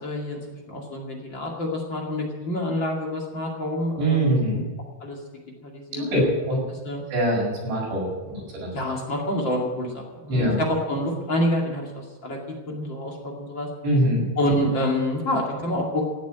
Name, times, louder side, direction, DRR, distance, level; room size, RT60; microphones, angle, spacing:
voice 1, 0.0-4.4 5.0-5.2 5.6-6.3 6.8-7.0 8.3-8.5 8.7-12.4 12.7-13.7 14.4-16.1, left 1 dB, 35° left, -1 dB, 2.0 m, -27 dB
voice 2, 4.0-4.6 5.9-6.6 7.1-8.7 10.3-10.6 13.8-14.2, right 1 dB, 70° right, -4 dB, 8.4 m, -23 dB
17.0 x 7.4 x 9.3 m, 1.2 s
omnidirectional pair, 5.4 m